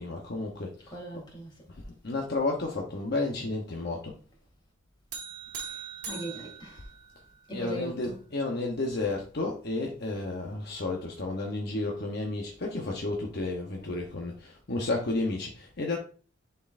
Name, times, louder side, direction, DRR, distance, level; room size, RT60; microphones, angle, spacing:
voice 1, 0.0-1.0 1.8-4.1 7.5-16.0, left 2 dB, 55° left, 0.9 m, -32 dB
voice 2, 0.9-1.6 3.3-3.5 5.6-6.9 7.5-8.2, right 1 dB, 20° left, 2.3 m, -40 dB
sound 1, 5.1-7.6, right 6 dB, 55° right, 1.2 m, -41 dB
10.5 x 4.5 x 2.5 m
head